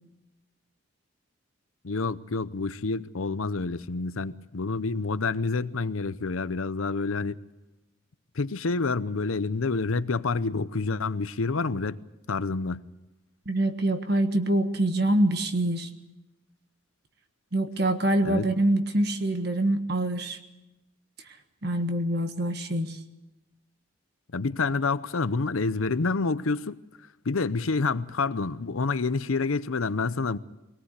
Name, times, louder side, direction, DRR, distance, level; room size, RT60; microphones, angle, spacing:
voice 1, 1.8-7.4 8.3-12.0 12.3-12.8 18.2-18.5 24.3-26.8 27.2-30.4, left 4 dB, 90° left, 0.8 m, -28 dB
voice 2, 13.4-15.9 17.5-20.4 21.6-23.0, right 1 dB, 50° right, 1.6 m, -25 dB
22.5 x 18.0 x 8.2 m
head